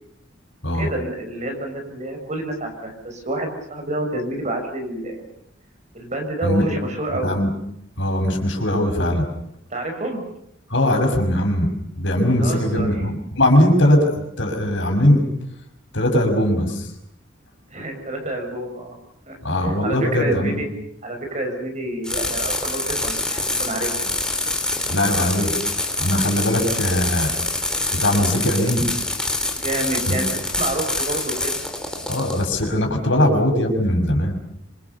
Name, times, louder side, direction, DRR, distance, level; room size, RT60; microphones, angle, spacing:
voice 1, 0.7-5.2 5.9-7.4 9.7-10.2 12.4-12.9 17.7-19.0 19.3-20.7 21.0-24.1 29.5-30.3 30.6-31.5, right 1 dB, 40° right, 3 dB, 6.7 m, -28 dB
voice 2, 6.4-6.8 7.1-7.5 8.0-9.2 10.7-11.7 12.0-14.1 14.4-15.3 15.9-16.9 19.4-20.6 24.9-25.5 26.0-27.3 27.9-28.9 30.1-30.2 32.1-34.4, left 1 dB, 70° left, 3 dB, 6.0 m, -20 dB
sound 1, 22.0-32.8, left 2 dB, 5° left, 4.3 m, -25 dB
26.5 x 26.0 x 7.0 m, 0.76 s
head